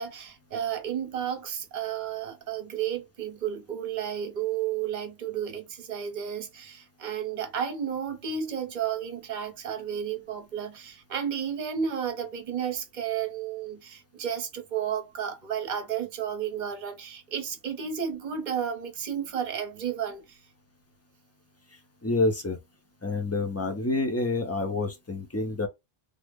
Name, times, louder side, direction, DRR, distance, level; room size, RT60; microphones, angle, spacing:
voice 1, 0.0-20.4, right 8 dB, 45° right, 0.9 m, -32 dB
voice 2, 22.0-22.6 23.0-25.7, left 2 dB, 20° left, 0.5 m, -28 dB
3.4 x 2.1 x 3.4 m
omnidirectional pair, 1.1 m